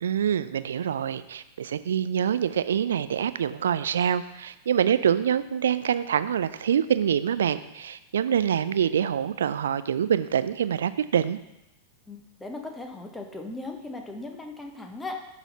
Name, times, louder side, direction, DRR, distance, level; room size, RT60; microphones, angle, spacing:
voice 1, 0.0-11.4, right 8 dB, 65° right, 14 dB, 0.3 m, -25 dB
voice 2, 12.1-15.2, left 2 dB, 10° left, 4 dB, 1.0 m, -38 dB
11.0 x 4.0 x 4.2 m, 0.91 s
figure-of-eight pair, 90°, 0 cm